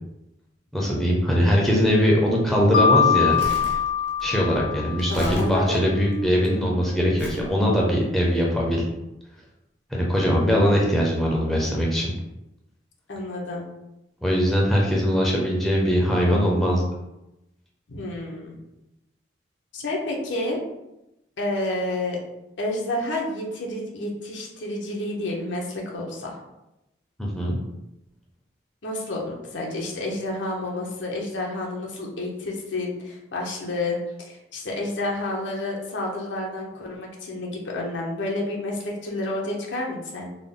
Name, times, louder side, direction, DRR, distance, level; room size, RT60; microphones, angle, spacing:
voice 1, 0.7-3.4 3.7-3.8 4.2-8.8 9.9-12.1 14.2-16.8 27.2-27.6, equal, ahead, -3 dB, 0.6 m, -21 dB
Mallet percussion, 2.7-5.5, left 7 dB, 50° left, 0.4 m, -23 dB
Crumpling crinkling, 3.1-6.5 7.2-7.5 8.2-8.4, right 1 dB, 80° right, 0.9 m, -36 dB
voice 2, 5.1-5.8 10.5-10.7 13.1-13.7 17.9-18.6 19.7-20.6 21.4-22.2 22.6-26.4 28.8-40.3, left 1 dB, 85° left, -2 dB, 0.9 m, -30 dB
3.7 x 2.1 x 3.7 m, 0.91 s
head